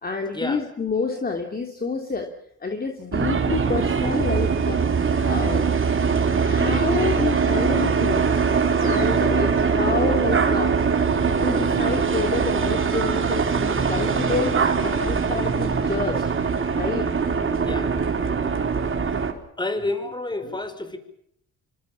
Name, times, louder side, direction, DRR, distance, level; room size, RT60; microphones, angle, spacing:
voice 1, 0.0-2.3 2.6-4.9 5.2-5.8 6.4-8.3 8.8-10.8 11.4-16.2 16.7-17.1 20.3-20.6, left 4 dB, 30° left, 3 dB, 3.0 m, -28 dB
sound 1, 3.1-19.3, right 5 dB, 40° right, 4.0 m, -22 dB
voice 2, 19.6-21.0, left 2 dB, 15° left, 9 dB, 5.2 m, -29 dB
26.0 x 25.5 x 7.1 m, 0.73 s
cardioid pair, 90°, 30 cm